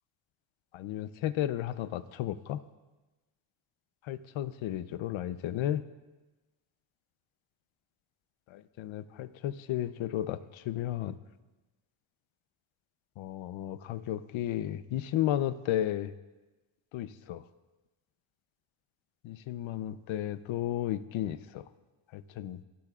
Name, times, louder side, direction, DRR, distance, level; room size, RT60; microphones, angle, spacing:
voice 1, 0.7-2.6 4.0-5.8 8.5-11.2 13.2-16.1 16.9-17.4 19.2-21.7 22.1-22.6, left 12 dB, 80° left, 13 dB, 0.8 m, -33 dB
27.5 x 19.0 x 2.5 m, 1.2 s
cardioid pair, 140°, 46 cm